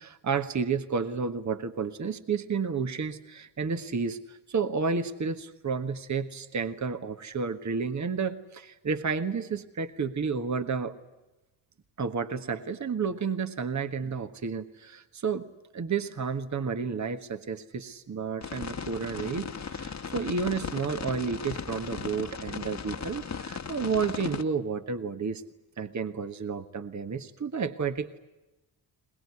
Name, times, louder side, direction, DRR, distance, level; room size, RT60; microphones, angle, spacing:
voice 1, 0.0-11.0 12.0-15.5 15.7-25.4 25.8-28.2, right 5 dB, 40° right, 9 dB, 1.5 m, -31 dB
sound 1, 18.4-24.4, left 6 dB, 35° left, 1.5 m, -37 dB
22.5 x 21.0 x 9.7 m, 1.0 s
supercardioid pair, 55°, 45 cm